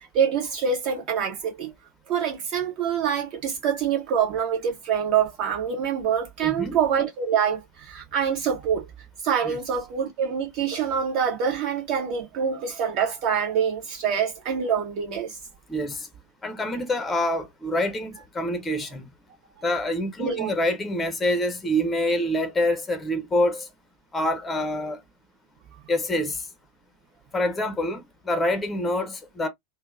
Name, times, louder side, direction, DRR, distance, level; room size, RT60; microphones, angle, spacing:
voice 1, 0.1-1.7 2.1-8.9 9.2-15.4 20.2-20.5, right 7 dB, 40° right, 1.5 m, -25 dB
voice 2, 6.4-6.8 9.4-9.6 15.7-16.1 16.4-19.1 19.6-23.7 24.1-25.0 25.9-26.4 27.3-29.5, left 1 dB, 10° left, 0.8 m, -26 dB
3.7 x 2.2 x 2.6 m
figure-of-eight pair, 90°, 0 cm